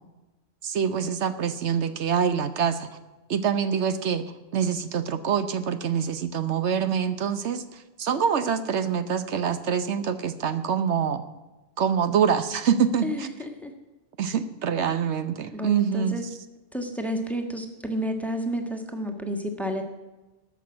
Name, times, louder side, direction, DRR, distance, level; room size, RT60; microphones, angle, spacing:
voice 1, 0.6-2.9 3.3-4.2 4.5-11.2 11.8-13.3 14.2-16.2, right 7 dB, 75° right, 11 dB, 1.1 m, -25 dB
voice 2, 13.0-13.7 15.5-16.2 16.7-19.8, equal, ahead, 4 dB, 1.3 m, -30 dB
13.5 x 6.1 x 9.6 m, 1.1 s
omnidirectional pair, 1.2 m